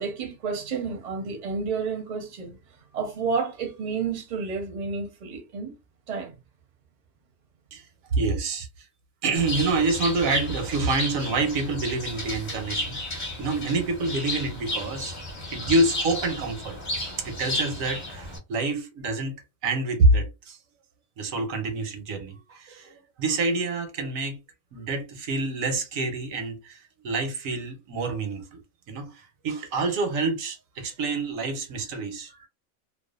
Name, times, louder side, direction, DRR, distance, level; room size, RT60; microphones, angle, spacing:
voice 1, 0.0-2.6 2.9-5.7 6.1-6.3, right 5 dB, 40° right, 0.6 m, -30 dB
voice 2, 8.1-8.7 9.2-15.1 15.5-16.8 17.2-19.4 19.6-20.6 21.2-24.4 24.7-28.6 28.9-32.5, right 3 dB, 80° right, 1.0 m, -27 dB
Bird, 9.4-18.4, left 1 dB, 40° left, 0.9 m, -33 dB
2.5 x 2.2 x 2.3 m
omnidirectional pair, 1.4 m